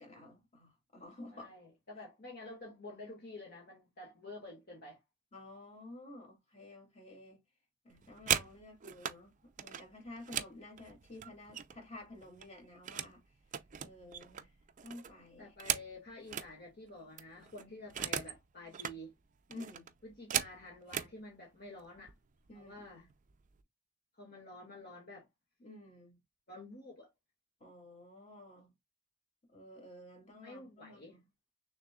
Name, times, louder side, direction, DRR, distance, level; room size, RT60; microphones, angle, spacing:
voice 1, 0.0-1.5 5.3-7.4 7.8-13.2 13.8-14.5 14.8-15.5 19.5-19.9 22.5-23.1 25.6-26.2 27.6-28.7 29.5-31.2, left 2 dB, 30° left, 2.5 m, -52 dB
voice 2, 1.3-5.0 15.4-19.2 20.0-22.1 22.5-23.1 24.2-25.3 26.5-27.1 30.4-31.1, left 2 dB, 45° left, 1.9 m, -50 dB
sound 1, 7.9-9.2 9.6-11.9 12.2-13.2 13.5-16.5 16.9-17.0 17.2-18.4 18.7-19.0 19.5-21.1 22.0-22.1 22.5-22.8 23.1-23.6, right 9 dB, 35° right, 0.4 m, -38 dB
6.4 x 3.4 x 2.3 m
head